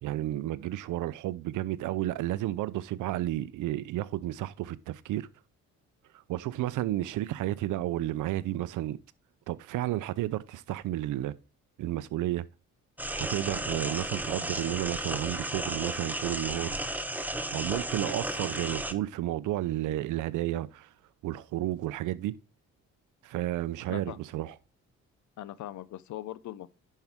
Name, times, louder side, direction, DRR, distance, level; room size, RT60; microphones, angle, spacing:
voice 1, 0.0-5.3 6.3-9.0 9.5-11.3 11.8-12.4 13.1-16.8 17.5-20.9 21.2-22.4 23.2-24.5, right 14 dB, 85° right, 0.7 m, -32 dB
sound 1, 13.0-18.9, right 1 dB, 5° right, 1.0 m, -34 dB
voice 2, 23.9-24.2 25.4-26.7, left 13 dB, 70° left, 0.7 m, -40 dB
10.5 x 5.6 x 3.6 m
cardioid pair, 90°, 30 cm